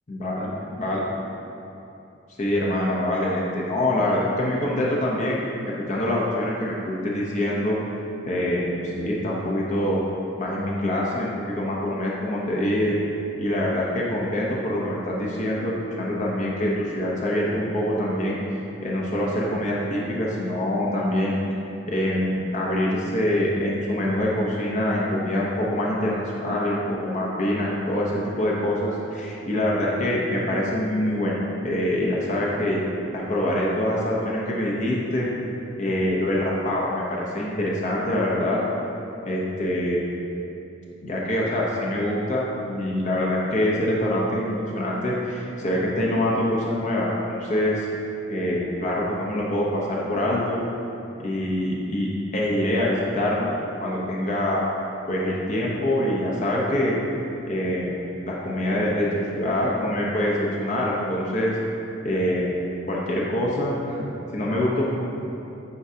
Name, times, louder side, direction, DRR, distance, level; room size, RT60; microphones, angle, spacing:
voice 1, 0.1-0.5 0.8-1.0 2.4-7.8 8.3-10.0 10.4-13.0 13.4-18.4 18.8-21.4 21.9-31.3 31.6-32.8 33.1-35.3 35.8-38.6 39.2-40.1 41.0-47.9 48.3-50.6 51.2-53.5 53.8-54.6 55.1-57.0 57.5-57.9 58.3-61.6 62.0-62.5 62.9-64.0 64.3-64.8, left 1 dB, 40° left, -4 dB, 0.9 m, -25 dB
9.6 x 4.6 x 2.8 m, 2.8 s
head